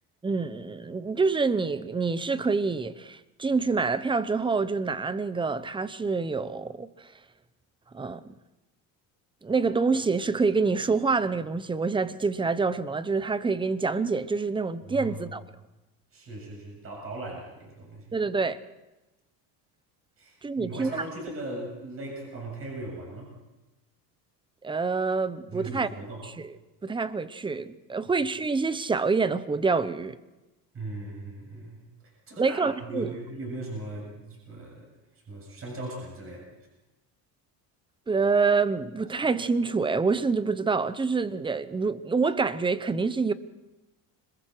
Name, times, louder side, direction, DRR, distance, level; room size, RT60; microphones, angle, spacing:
voice 1, 0.2-7.1 7.9-8.3 9.4-15.4 18.1-18.6 20.4-20.9 24.6-25.9 26.4-26.5 26.8-30.2 32.4-33.1 38.1-43.3, right 4 dB, 10° right, 0.8 m, -26 dB
voice 2, 14.9-15.2 16.1-18.2 20.2-23.3 25.5-26.2 30.7-31.8 32.3-34.9 35.3-36.5, right 2 dB, 35° right, 7.3 m, -38 dB
26.0 x 21.5 x 4.8 m
cardioid pair, 130°, 41 cm